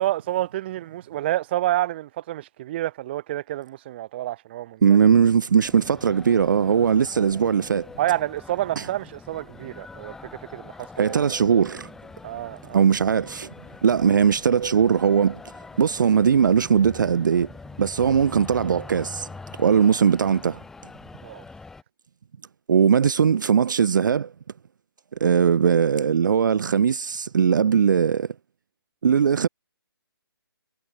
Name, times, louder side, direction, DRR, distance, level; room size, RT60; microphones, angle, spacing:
voice 1, 0.0-4.8 8.0-11.0 12.2-12.8 21.2-21.4, right 14 dB, 25° right, 0.9 m, -28 dB
voice 2, 4.8-7.9 8.8-8.9 11.0-11.9 12.7-13.5 13.8-15.4 15.8-17.5 17.8-19.3 19.6-20.6 22.7-24.3 25.2-28.3 29.0-29.5, right 7 dB, 50° right, 0.4 m, -20 dB
sound 1, 5.6-21.8, left 3 dB, 5° left, 0.8 m, -43 dB
figure-of-eight pair, 145°, 13 cm